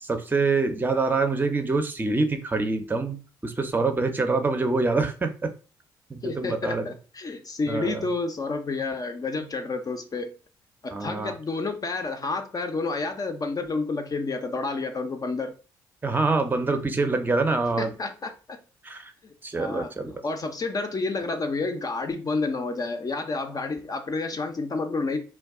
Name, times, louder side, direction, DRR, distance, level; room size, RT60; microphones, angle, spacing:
voice 1, 0.0-5.5 6.1-6.8 7.7-8.0 10.9-11.3 16.0-17.9 18.8-19.1 19.4-20.1, right 3 dB, 20° right, 0.6 m, -25 dB
voice 2, 6.2-10.3 10.8-15.5 17.8-18.6 19.6-25.2, left 3 dB, 35° left, 0.5 m, -30 dB
2.3 x 2.2 x 3.5 m
hypercardioid pair, 45°, 11 cm